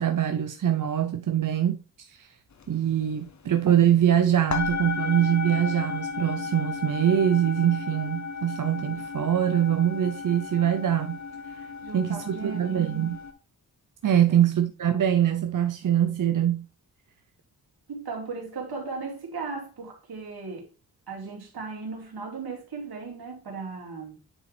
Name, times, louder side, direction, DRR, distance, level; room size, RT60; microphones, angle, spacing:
voice 1, 0.0-2.3 2.7-11.2 11.5-11.6 11.9-13.2 14.0-16.7, right 10 dB, 55° right, 0.7 m, -23 dB
sound 1, 2.6-2.8 3.0-4.1 4.5-13.3, left 5 dB, 45° left, 1.1 m, -34 dB
voice 2, 11.8-13.1 14.3-14.5 17.9-20.7 21.1-24.2, right 4 dB, 75° right, 2.5 m, -37 dB
8.8 x 3.9 x 3.3 m
cardioid pair, 70°, 38 cm